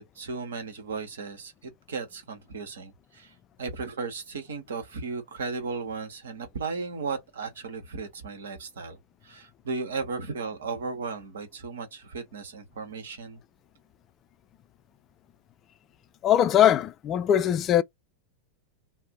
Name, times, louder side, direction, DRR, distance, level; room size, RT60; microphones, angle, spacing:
voice 1, 0.0-9.0 9.2-13.4, right 4 dB, 65° right, 1.0 m, -35 dB
voice 2, 16.2-17.8, left 10 dB, 30° left, 0.3 m, -21 dB
2.5 x 2.1 x 3.7 m
figure-of-eight pair, 90°, 0 cm